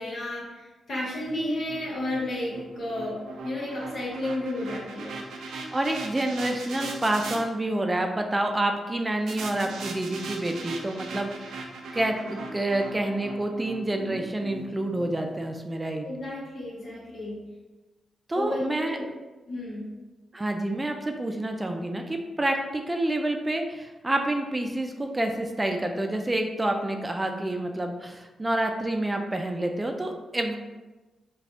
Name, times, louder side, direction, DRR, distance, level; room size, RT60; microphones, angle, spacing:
voice 1, 0.0-5.2 16.0-17.4 18.3-19.1 19.5-19.9, left 1 dB, 65° left, -5 dB, 1.2 m, -32 dB
sound 1, 1.2-7.4 9.3-15.5, right 3 dB, 85° right, 0.4 m, -39 dB
voice 2, 5.7-11.7 11.9-16.1 18.3-19.0 20.3-30.6, right 1 dB, 25° right, 4 dB, 0.4 m, -28 dB
4.0 x 2.4 x 2.8 m, 1.2 s
supercardioid pair, 45°, 0 cm